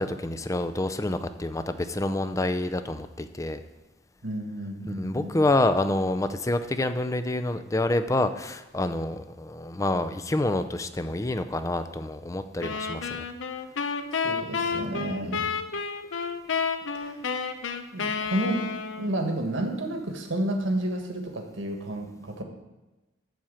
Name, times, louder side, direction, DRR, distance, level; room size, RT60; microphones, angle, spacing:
voice 1, 0.0-3.6 5.0-13.3 14.7-14.8 15.2-15.6, left 2 dB, 15° left, 10 dB, 0.5 m, -28 dB
voice 2, 4.2-5.4 14.1-15.4 16.9-17.2 17.9-18.7 19.0-22.4, right 1 dB, 85° right, 3 dB, 1.7 m, -31 dB
sound 1, 12.6-19.2, left 5 dB, 85° left, 0.7 m, -31 dB
12.5 x 4.4 x 7.7 m, 1.1 s
head